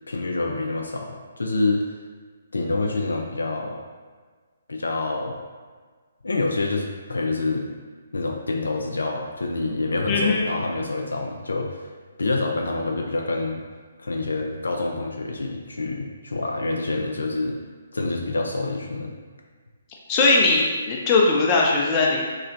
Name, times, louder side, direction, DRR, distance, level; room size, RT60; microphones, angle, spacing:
voice 1, 0.1-1.9 2.5-3.8 4.7-5.4 6.2-7.7 8.1-11.9 12.2-13.6 14.0-17.5 17.9-19.1, left 2 dB, 80° left, 1 dB, 0.4 m, -27 dB
voice 2, 10.1-10.5 20.1-22.2, left 3 dB, 25° left, -2 dB, 0.5 m, -19 dB
3.1 x 2.9 x 2.5 m, 1.5 s
figure-of-eight pair, 135°, 0 cm